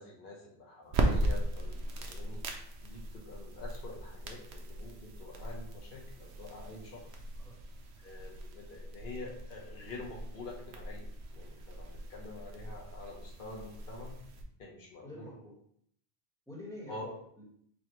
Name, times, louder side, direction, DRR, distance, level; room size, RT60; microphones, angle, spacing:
voice 1, 0.0-2.4 2.8-7.2 8.0-11.1 11.3-14.2 14.6-15.3 16.9-17.1, left 2 dB, 55° left, -2 dB, 1.1 m, -47 dB
sound 1, 0.9-14.4, right 2 dB, 90° right, 0.9 m, -38 dB
voice 2, 15.0-15.6 16.5-17.4, left 1 dB, 5° left, -5 dB, 1.3 m, -47 dB
5.2 x 2.4 x 3.0 m, 0.65 s
omnidirectional pair, 1.1 m